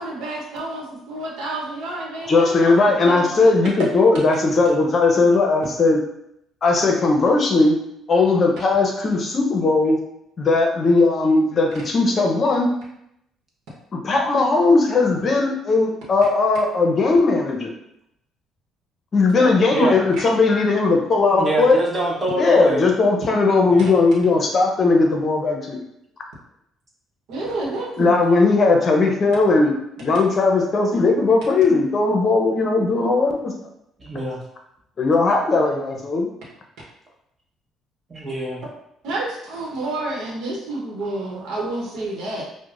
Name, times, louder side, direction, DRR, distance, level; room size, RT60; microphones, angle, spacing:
voice 1, 0.0-3.6 19.3-19.5 27.3-28.2 39.0-42.4, right 2 dB, 80° right, -3 dB, 0.9 m, -29 dB
voice 2, 2.3-6.0 6.6-7.7 8.1-10.0 10.4-12.7 14.0-17.7 19.1-21.8 22.4-25.8 28.0-29.7 30.0-33.5 35.0-36.3, left 3 dB, 40° left, 2 dB, 0.7 m, -18 dB
voice 3, 21.3-22.8 23.7-23.9 34.0-34.4 38.1-38.6, right 1 dB, 30° right, -4 dB, 1.2 m, -24 dB
4.9 x 2.1 x 2.5 m, 0.76 s
cardioid pair, 110°, 0 cm